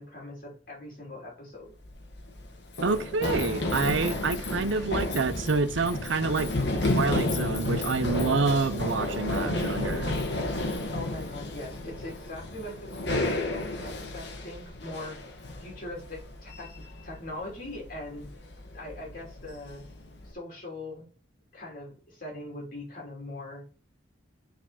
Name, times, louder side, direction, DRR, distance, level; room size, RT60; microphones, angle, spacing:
voice 1, 0.0-1.7 9.2-9.8 10.8-15.3 15.6-18.3 18.7-19.8 20.2-21.1 21.5-23.6, left 1 dB, 45° left, 3.2 m, -41 dB
Run, 1.7-20.3, left 2 dB, 65° left, 1.4 m, -32 dB
voice 2, 2.8-6.5 6.9-10.2, right 4 dB, 80° right, 0.6 m, -27 dB
6.1 x 4.2 x 4.3 m
head